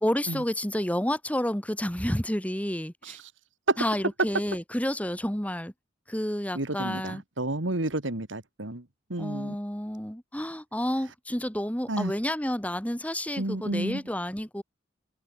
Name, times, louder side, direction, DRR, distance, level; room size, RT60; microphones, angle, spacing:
voice 1, 0.0-3.2 3.8-5.7 6.1-7.2 9.2-14.6, equal, 10° left, 2.2 m, -30 dB
voice 2, 6.5-8.8 9.1-9.5 11.9-12.1 13.4-14.0, right 2 dB, 85° right, 2.5 m, -30 dB
open air
head